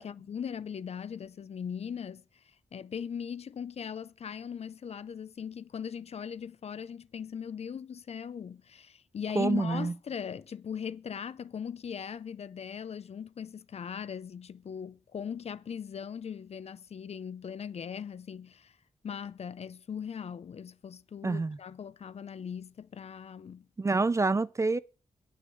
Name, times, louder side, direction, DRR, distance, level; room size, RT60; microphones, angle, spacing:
voice 1, 0.0-2.2 2.7-18.7 19.0-23.7, left 7 dB, 55° left, 0.5 m, -39 dB
voice 2, 9.4-9.9 21.2-21.6 23.8-24.8, right 3 dB, 25° right, 0.4 m, -27 dB
9.5 x 6.4 x 6.2 m
wide cardioid pair, 140°, 13 cm